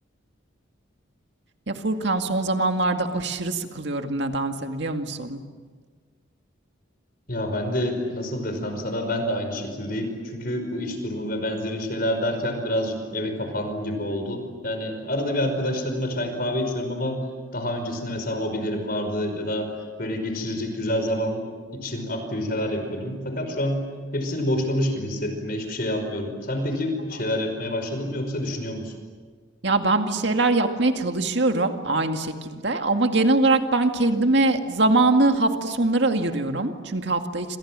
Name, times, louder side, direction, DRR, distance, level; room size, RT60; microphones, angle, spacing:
voice 1, 1.7-5.4 29.6-37.6, right 2 dB, 60° right, 5 dB, 2.2 m, -23 dB
voice 2, 7.3-17.2 17.5-19.7 20.0-23.8 24.1-28.9, left 1 dB, 45° left, 6 dB, 5.3 m, -27 dB
29.0 x 26.5 x 7.6 m, 1.5 s
head